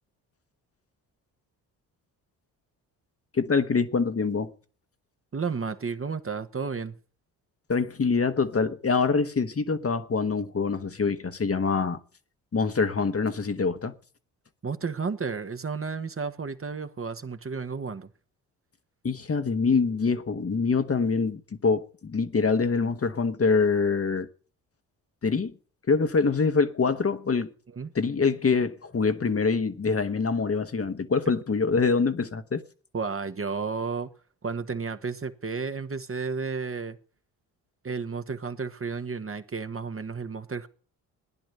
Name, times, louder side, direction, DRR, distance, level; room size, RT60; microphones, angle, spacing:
voice 1, 3.3-4.5 7.7-12.0 12.5-13.9 19.0-24.3 25.2-25.5 25.9-27.5 27.9-32.6, left 4 dB, 30° left, 1.3 m, -25 dB
voice 2, 5.3-7.0 14.6-18.1 27.7-27.9 32.9-34.1 34.4-37.0 37.8-40.7, right 5 dB, 30° right, 1.3 m, -32 dB
15.5 x 10.5 x 6.7 m
hypercardioid pair, 50°, 44 cm